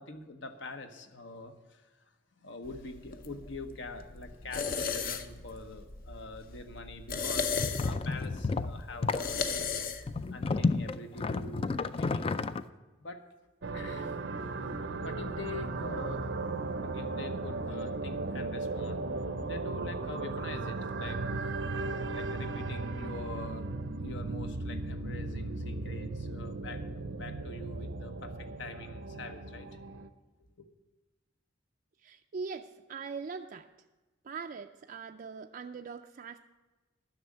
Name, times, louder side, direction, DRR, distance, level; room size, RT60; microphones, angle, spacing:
voice 1, 0.0-1.8 2.4-9.9 10.3-12.2 13.0-13.2 13.7-14.1 15.0-16.3 16.8-19.0 19.5-23.7 24.0-26.8 27.1-29.7 30.4-30.7, left 2 dB, 70° left, 7 dB, 1.1 m, -44 dB
sound 1, 2.6-10.3, left 5 dB, 50° left, 0.7 m, -36 dB
sound 2, 7.6-9.3 10.1-12.6, left 4 dB, 30° left, 0.4 m, -31 dB
sound 3, 13.6-30.1, right 3 dB, 75° right, 0.7 m, -36 dB
voice 2, 32.0-33.7 34.2-36.4, right 5 dB, 45° right, 5 dB, 0.4 m, -41 dB
11.0 x 6.4 x 8.6 m, 1.2 s
head